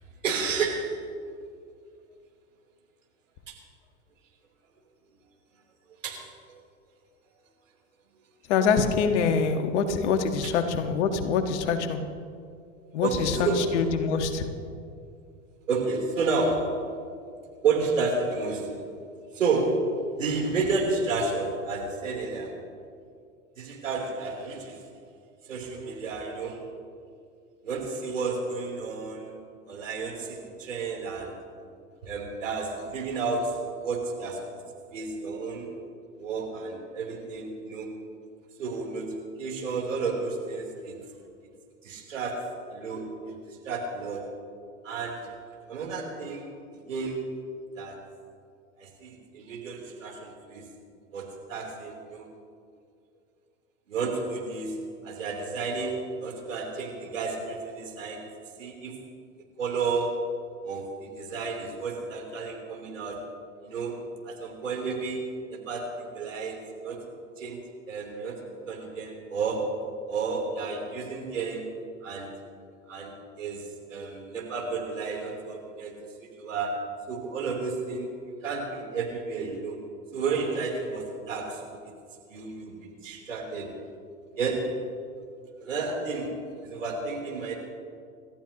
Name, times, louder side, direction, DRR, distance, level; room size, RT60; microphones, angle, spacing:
voice 1, 0.2-1.0 3.5-3.6 6.0-6.6 13.0-13.8 15.7-16.9 17.6-18.7 19.3-22.6 23.6-24.8 25.4-26.7 27.6-29.4 29.7-31.4 32.0-34.5 34.9-35.7 36.2-37.9 38.6-41.0 41.8-44.3 44.8-45.4 45.7-46.4 46.7-47.5 47.8-48.0 48.8-50.7 51.1-52.3 53.9-54.8 55.0-58.3 58.6-59.0 59.6-63.3 63.6-66.6 66.8-67.0 67.4-71.7 72.0-72.4 72.9-75.9 76.2-78.1 78.4-79.8 80.1-81.9 82.3-83.7 84.3-84.9 85.6-87.6, right 4 dB, 80° right, 0 dB, 3.5 m, -31 dB
voice 2, 8.5-12.0 12.9-14.4, left 5 dB, 60° left, 7 dB, 1.6 m, -25 dB
28.0 x 14.0 x 2.9 m, 2.3 s
figure-of-eight pair, 85°, 38 cm